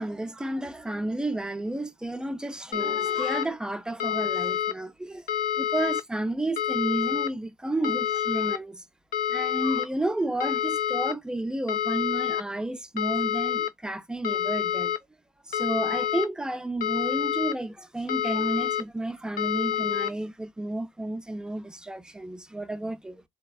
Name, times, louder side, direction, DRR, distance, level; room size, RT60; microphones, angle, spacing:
voice 1, 0.0-5.3 5.6-8.8 9.3-14.9 15.5-23.2, right 1 dB, 5° right, 0.5 m, -31 dB
sound 1, 2.7-3.4 4.0-4.7 5.3-6.0 6.6-7.3 7.8-8.6 9.1-9.8 10.4-11.1 11.7-12.4 13.0-13.7 14.2-15.0 15.5-16.3 16.8-17.5 18.1-18.8 19.4-20.1, left 9 dB, 55° left, 0.5 m, -27 dB
3.9 x 2.1 x 2.2 m
cardioid pair, 110°, 17 cm